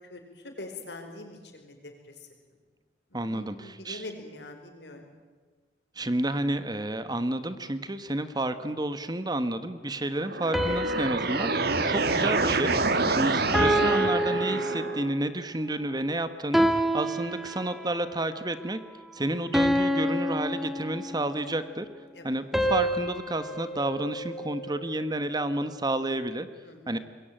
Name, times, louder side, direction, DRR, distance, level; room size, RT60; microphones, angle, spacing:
voice 1, 0.0-1.9 2.2-2.3 3.1-5.0 22.1-22.3 26.6-27.0, left 2 dB, 70° left, 4 dB, 5.1 m, -43 dB
voice 2, 3.1-4.0 6.0-18.8 19.1-21.9 22.2-26.5 26.9-27.0, right 1 dB, 25° right, 11 dB, 1.2 m, -30 dB
sound 1, 10.1-15.1, right 3 dB, 60° right, 2.2 m, -27 dB
sound 2, 10.5-13.0 13.5-15.3 16.5-18.1 19.5-21.4 22.5-24.9, equal, ahead, 1.9 m, -28 dB
26.5 x 22.0 x 8.9 m, 1.4 s
head